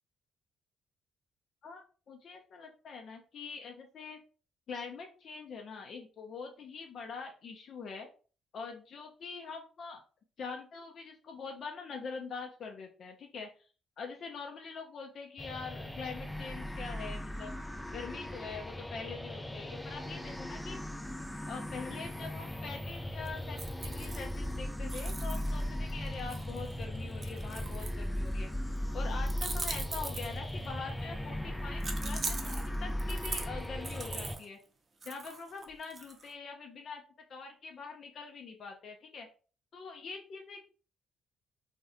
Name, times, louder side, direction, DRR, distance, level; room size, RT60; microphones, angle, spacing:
voice 1, 1.6-4.2 4.7-8.1 8.5-10.0 10.4-13.5 14.0-17.6 17.9-20.8 21.5-28.5 28.9-34.6 35.0-37.0 37.3-39.3 39.7-40.7, left 5 dB, 55° left, 2 dB, 0.5 m, -44 dB
sound 1, 15.4-34.4, left 1 dB, 5° left, 0.3 m, -37 dB
sound 2, 23.2-24.5 24.9-28.3 29.3-30.7 31.8-34.5 35.0-36.3, right 3 dB, 35° right, 0.6 m, -41 dB
2.5 x 2.1 x 3.8 m, 0.38 s
cardioid pair, 90°, 0 cm